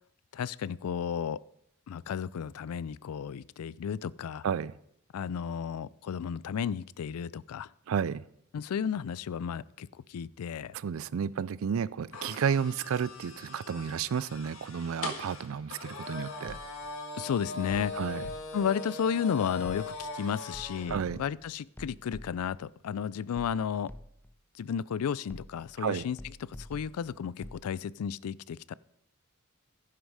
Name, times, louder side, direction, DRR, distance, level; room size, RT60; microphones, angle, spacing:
voice 1, 0.3-1.4 1.9-4.4 5.1-7.7 8.5-10.7 17.1-18.0 18.5-23.9 24.6-28.7, left 7 dB, 80° left, 0.4 m, -33 dB
voice 2, 7.9-8.2 10.7-16.6 17.9-18.3 20.9-21.2 25.8-26.0, right 7 dB, 65° right, 0.4 m, -32 dB
sound 1, 12.1-20.9, left 4 dB, 65° left, 1.7 m, -40 dB
sound 2, 16.5-17.0 17.7-18.8 19.6-20.2 20.5-22.7 23.4-24.4 25.3-25.8 26.2-27.7, left 1 dB, 10° left, 0.5 m, -47 dB
11.5 x 10.5 x 4.9 m
head